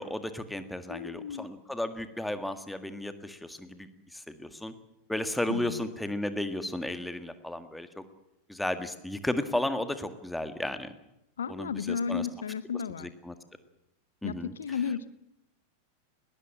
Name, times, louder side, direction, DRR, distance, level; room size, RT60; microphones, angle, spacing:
voice 1, 0.0-4.7 5.1-8.0 8.5-10.9 11.5-12.2 13.0-13.3 14.2-14.8, left 1 dB, 5° left, 10 dB, 1.8 m, -34 dB
voice 2, 0.9-1.5 5.5-5.8 11.4-13.1 14.2-15.1, left 7 dB, 65° left, 17 dB, 0.8 m, -33 dB
20.5 x 19.0 x 8.7 m, 0.85 s
figure-of-eight pair, 90°, 0 cm